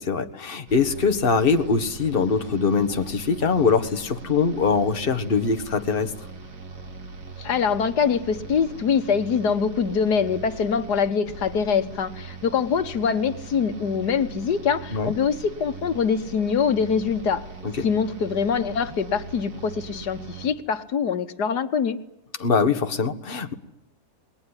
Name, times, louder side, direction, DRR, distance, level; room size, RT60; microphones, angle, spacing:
voice 1, 0.0-6.1 14.9-15.1 17.6-17.9 22.4-23.5, left 5 dB, 35° left, 7 dB, 1.7 m, -22 dB
sound 1, 0.7-20.5, right 4 dB, 90° right, 2.8 m, -40 dB
voice 2, 7.4-17.4 17.8-22.0, left 6 dB, 85° left, 9 dB, 1.9 m, -24 dB
28.0 x 21.0 x 9.9 m, 0.83 s
omnidirectional pair, 1.7 m